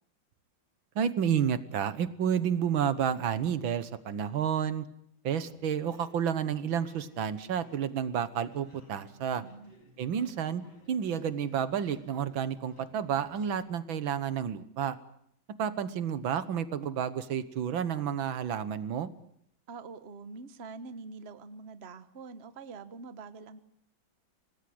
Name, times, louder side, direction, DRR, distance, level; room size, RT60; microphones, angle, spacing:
voice 1, 1.0-4.9 5.2-9.4 10.0-10.6 10.9-15.0 15.6-19.1, right 8 dB, 75° right, 14 dB, 2.0 m, -30 dB
sound 1, 5.3-13.6, equal, 85° left, 7.4 m, -58 dB
voice 2, 9.4-9.8 19.7-23.6, right 4 dB, 35° right, 12 dB, 1.3 m, -45 dB
25.5 x 19.5 x 7.9 m, 0.72 s
omnidirectional pair, 2.2 m